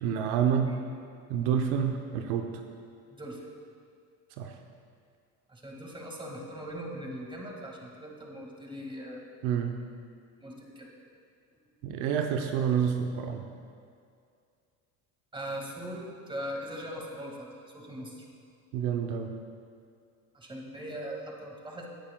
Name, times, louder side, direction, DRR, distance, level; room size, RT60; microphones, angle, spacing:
voice 1, 0.0-0.7 1.3-2.5 4.4-4.5 9.4-9.7 11.8-13.4 18.7-19.3, right 8 dB, 70° right, 4 dB, 0.8 m, -28 dB
voice 2, 3.1-3.4 5.5-9.3 10.4-10.9 15.3-18.3 20.3-21.9, equal, 10° right, -1 dB, 1.9 m, -40 dB
16.5 x 9.7 x 2.3 m, 2.3 s
supercardioid pair, 100°, 40 cm